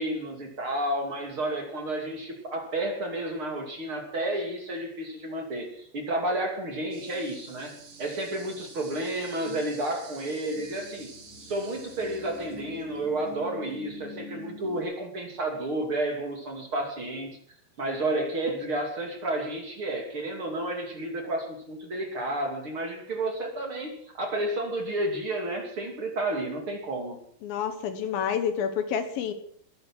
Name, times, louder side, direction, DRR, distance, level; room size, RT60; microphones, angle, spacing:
voice 1, 0.0-11.1 11.4-17.3 17.8-27.2, right 1 dB, 35° right, 3 dB, 3.0 m, -31 dB
sound 1, 6.9-14.8, right 1 dB, 90° right, 6.4 m, -45 dB
voice 2, 27.4-29.3, left 7 dB, 70° left, 10 dB, 2.9 m, -29 dB
21.0 x 10.5 x 6.1 m, 0.64 s
omnidirectional pair, 4.6 m